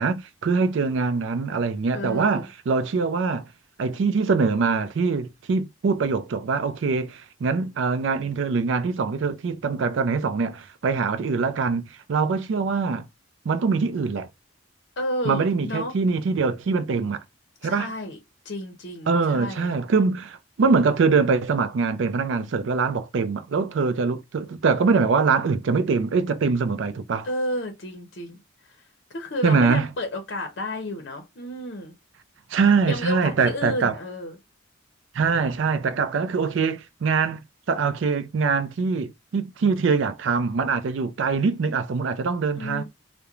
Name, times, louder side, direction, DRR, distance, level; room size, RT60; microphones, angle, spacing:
voice 1, 0.0-3.5 3.8-13.1 13.5-14.3 15.2-17.2 17.6-17.9 19.1-27.3 29.4-29.9 32.5-34.0 35.1-42.8, right 4 dB, 65° right, 0.4 m, -23 dB
voice 2, 1.9-2.5 15.0-15.9 17.6-18.2 18.4-19.7 27.2-28.4 29.1-31.9 32.9-34.4 42.6-42.8, left 1 dB, 55° left, 0.6 m, -31 dB
3.0 x 2.1 x 2.3 m
head